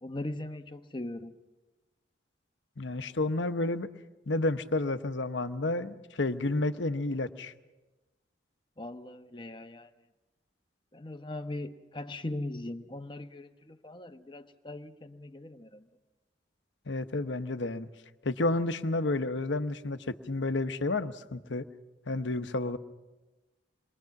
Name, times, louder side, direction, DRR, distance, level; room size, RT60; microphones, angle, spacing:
voice 1, 0.0-1.3 8.8-9.9 10.9-15.8, left 1 dB, 25° left, 8 dB, 1.0 m, -40 dB
voice 2, 2.8-3.9 4.3-7.5 16.9-17.9 18.2-21.6 22.1-22.8, left 2 dB, 85° left, 10 dB, 1.0 m, -30 dB
27.5 x 22.5 x 5.9 m, 1.1 s
head